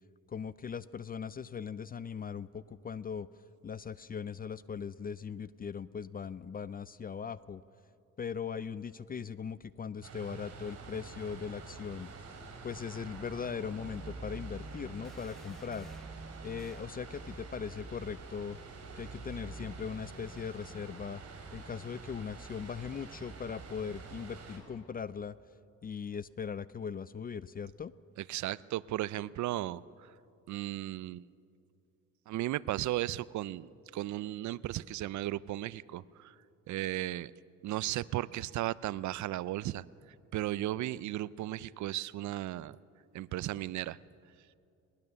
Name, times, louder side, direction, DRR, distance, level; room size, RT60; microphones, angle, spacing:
voice 1, 0.3-3.3 3.6-7.6 8.2-12.1 12.6-15.9 16.4-18.6 19.0-21.2 21.5-25.4 25.8-27.9, left 6 dB, 30° left, 17 dB, 0.5 m, -39 dB
sound 1, 10.0-24.6, right 4 dB, 55° right, 5.8 m, -46 dB
sound 2, 15.0-16.2 16.6-16.9, equal, ahead, 1.0 m, -58 dB
voice 2, 28.3-30.1 30.5-31.3 32.3-36.3 36.7-37.3 37.6-39.8 40.3-42.8 43.1-44.0, right 15 dB, 70° right, 19 dB, 0.5 m, -35 dB
20.0 x 20.0 x 6.9 m, 2.6 s
cardioid pair, 90°, 30 cm